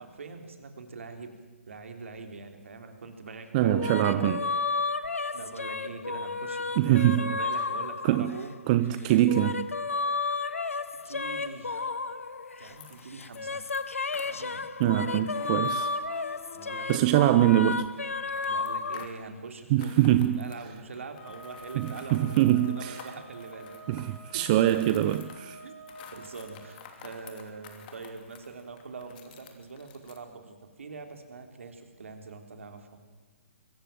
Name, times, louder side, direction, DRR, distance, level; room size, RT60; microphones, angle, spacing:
voice 1, 0.0-1.4 1.7-4.5 5.3-9.2 11.0-11.9 12.6-13.7 14.2-14.7 16.5-17.1 18.4-24.0 24.3-24.5 25.0-25.3 25.6-33.0, right 4 dB, 65° right, 3.5 m, -43 dB
voice 2, 3.5-4.4 6.8-7.3 8.0-8.3 8.7-9.7 14.8-15.9 16.9-17.9 19.7-20.4 21.8-23.0 23.9-25.2, right 13 dB, 35° right, 0.7 m, -23 dB
sound 1, 3.6-8.6 9.1-12.8 13.1-19.1, left 4 dB, 75° left, 1.3 m, -32 dB
sound 2, 12.7-13.4 13.7-17.7 18.3-19.2 19.7-25.5 25.8-30.2, left 7 dB, 40° left, 2.9 m, -49 dB
sound 3, 21.1-26.6, right 1 dB, 15° left, 5.3 m, -48 dB
23.0 x 14.5 x 9.1 m
figure-of-eight pair, 130°, 7 cm